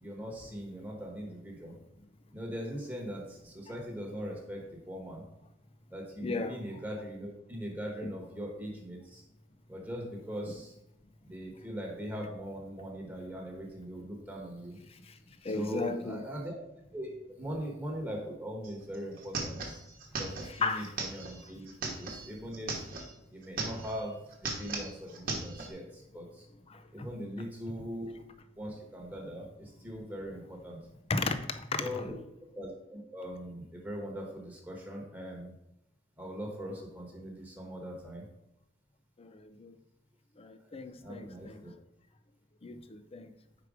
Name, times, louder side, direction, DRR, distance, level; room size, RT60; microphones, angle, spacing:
voice 1, 0.0-1.8 2.3-5.2 5.9-9.2 9.7-10.7 11.2-14.8 15.5-16.6 16.9-17.1 17.4-19.8 20.2-22.8 23.3-24.1 24.4-26.4 26.9-28.1 28.6-30.8 31.8-32.1 32.5-35.5 36.2-38.2 41.0-41.7 42.7-42.8, equal, 10° right, -1 dB, 1.2 m, -40 dB
voice 2, 6.2-6.6 15.4-16.2 20.6-20.9 27.0-27.1 27.4-27.5 31.1-31.4 31.8-32.1 39.2-39.3 39.6-39.7 40.4-41.6 42.6-43.3, left 3 dB, 30° left, 10 dB, 0.4 m, -34 dB
sound 1, 18.6-18.7 18.9-23.1 23.4-24.1 24.3-25.7, right 3 dB, 50° right, 1.1 m, -38 dB
5.0 x 4.7 x 4.9 m, 0.84 s
head